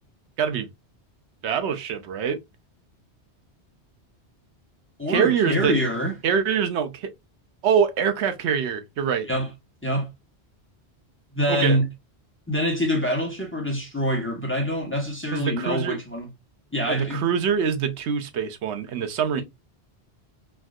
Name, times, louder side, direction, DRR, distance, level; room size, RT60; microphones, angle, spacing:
voice 1, 0.4-0.7 1.4-2.4 5.1-5.8 6.2-7.1 7.6-9.3 11.5-11.8 15.3-16.0 16.9-19.4, right 7 dB, 80° right, 0.9 m, -24 dB
voice 2, 5.0-6.1 9.2-9.5 9.8-10.1 11.3-11.9 12.5-16.3 16.7-17.2, equal, 10° left, 0.9 m, -25 dB
3.4 x 2.6 x 2.3 m
omnidirectional pair, 1.1 m